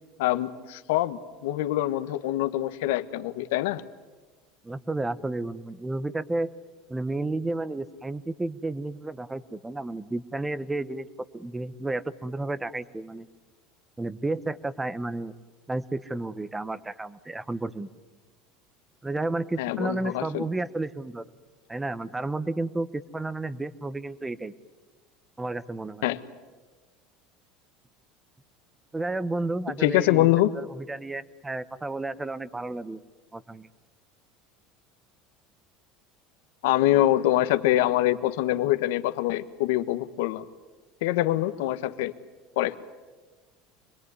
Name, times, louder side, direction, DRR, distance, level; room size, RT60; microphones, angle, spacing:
voice 1, 0.2-3.8 19.6-20.5 26.0-26.2 29.7-30.5 36.6-40.4 41.0-42.1 42.6-42.8, left 15 dB, 85° left, 12 dB, 1.2 m, -24 dB
voice 2, 4.6-6.5 6.9-11.1 11.3-13.3 14.0-15.3 15.7-17.9 19.0-21.2 21.7-24.5 25.4-26.0 28.9-33.0 33.3-33.7, right 2 dB, 10° right, 16 dB, 0.8 m, -32 dB
26.0 x 21.0 x 9.7 m, 1.3 s
cardioid pair, 155°, 0 cm